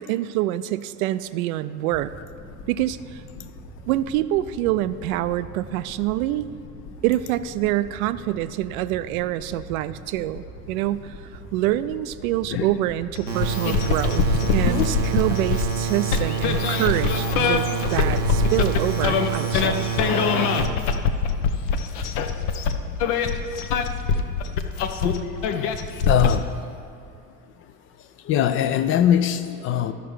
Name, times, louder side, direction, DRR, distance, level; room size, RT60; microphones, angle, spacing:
voice 1, 0.0-2.1 2.7-3.2 3.9-6.5 7.0-19.9, right 14 dB, 60° right, 14 dB, 0.5 m, -26 dB
sound 1, 1.9-18.5, equal, 85° left, 1.6 m, -42 dB
sound 2, 13.2-26.4, left 6 dB, 60° left, 0.8 m, -24 dB
sound 3, 13.3-20.7, right 7 dB, 85° right, 0.8 m, -28 dB
voice 2, 26.1-26.5 28.2-29.9, left 10 dB, 30° left, 11 dB, 0.3 m, -21 dB
12.5 x 5.4 x 4.7 m, 2.4 s
figure-of-eight pair, 65°, 50 cm